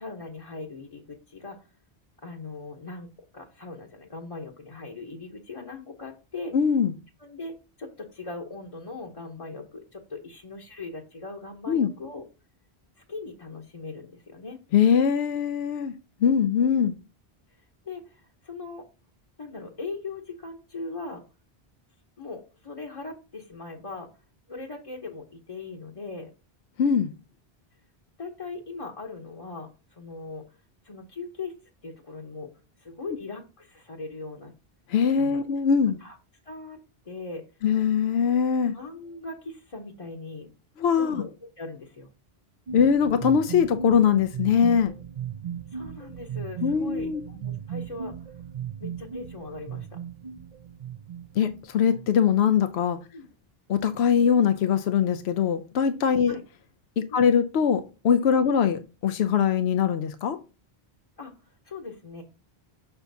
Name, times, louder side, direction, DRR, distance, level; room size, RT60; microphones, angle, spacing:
voice 1, 0.0-1.7 2.2-6.5 7.2-12.3 13.1-14.6 17.5-18.9 19.4-21.2 22.2-24.1 24.5-26.3 28.2-30.5 30.8-31.5 31.8-32.5 32.8-34.5 35.2-35.5 36.0-36.2 36.4-36.8 37.0-37.4 38.7-40.5 40.9-41.3 41.6-42.1 45.7-48.2 48.8-50.0 53.1-53.3 56.3-56.4 57.1-57.3 58.4-58.6 61.2-62.2, left 3 dB, 35° left, 0 dB, 0.9 m, -39 dB
voice 2, 6.5-7.0 11.7-11.9 14.7-15.9 16.2-16.9 26.8-27.1 34.9-36.0 37.6-38.8 40.8-41.2 42.7-44.9 46.6-47.2 51.4-53.0 53.7-56.4 57.0-60.4, left 7 dB, 85° left, 9 dB, 0.9 m, -22 dB
sound 1, 42.7-52.3, right 8 dB, 50° right, 0.6 m, -37 dB
6.9 x 6.8 x 2.7 m, 0.31 s
omnidirectional pair, 1.1 m